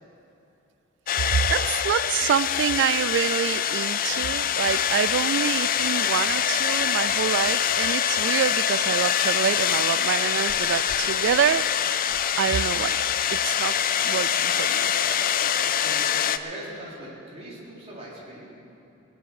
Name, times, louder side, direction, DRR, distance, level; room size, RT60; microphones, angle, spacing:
sound 1, 1.1-16.4, left 9 dB, 40° left, 0.4 m, -24 dB
voice 1, 1.1-13.0 13.3-14.9, right 8 dB, 55° right, 18 dB, 0.3 m, -27 dB
voice 2, 15.8-18.5, right 1 dB, 30° right, -6 dB, 3.7 m, -40 dB
20.5 x 7.8 x 7.1 m, 2.8 s
head